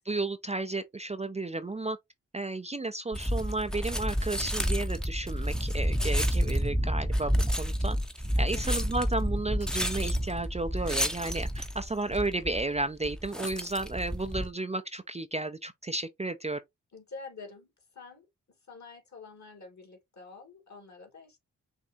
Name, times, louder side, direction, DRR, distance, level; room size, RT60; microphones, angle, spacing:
voice 1, 0.0-2.0 2.3-7.3 7.6-8.0 8.4-16.6, right 2 dB, 20° right, 0.5 m, -33 dB
sound 1, 3.1-14.5, equal, ahead, 0.8 m, -30 dB
voice 2, 16.9-18.3 18.7-21.4, left 4 dB, 55° left, 2.7 m, -47 dB
6.2 x 2.7 x 2.8 m
supercardioid pair, 45°, 33 cm